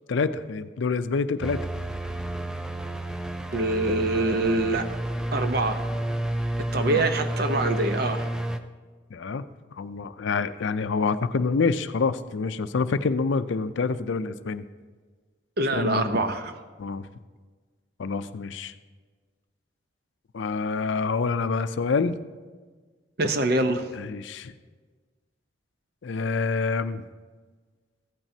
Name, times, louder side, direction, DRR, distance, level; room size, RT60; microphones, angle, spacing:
voice 1, 0.1-1.7 6.9-7.1 9.1-9.4 9.8-14.7 15.7-16.2 16.8-17.1 18.0-18.7 20.3-22.2 24.0-24.5 26.0-27.0, left 4 dB, 70° left, 12 dB, 0.4 m, -27 dB
sound 1, 1.4-8.6, right 1 dB, 5° right, 0.3 m, -30 dB
voice 2, 3.5-4.9 5.3-5.8 6.7-8.3 15.6-16.6 23.2-23.9, right 2 dB, 50° right, 8 dB, 0.7 m, -25 dB
14.5 x 9.0 x 2.8 m, 1.4 s
head